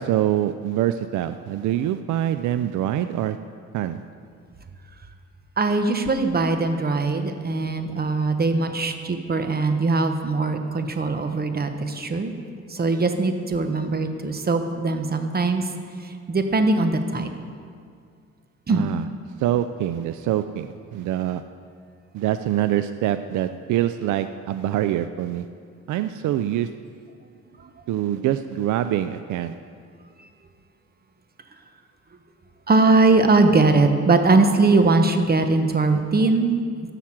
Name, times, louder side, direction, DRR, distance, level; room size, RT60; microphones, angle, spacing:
voice 1, 0.0-3.4 3.7-4.0 18.7-19.1 19.4-21.4 22.1-25.5 25.9-26.7 27.9-29.5, right 12 dB, 75° right, 10 dB, 0.5 m, -25 dB
voice 2, 5.6-12.3 12.7-15.7 16.0-17.3 18.7-18.9 27.6-27.7 32.7-36.6, right 3 dB, 30° right, 7 dB, 1.1 m, -21 dB
13.0 x 5.9 x 7.4 m, 2.2 s
cardioid pair, 90°, 30 cm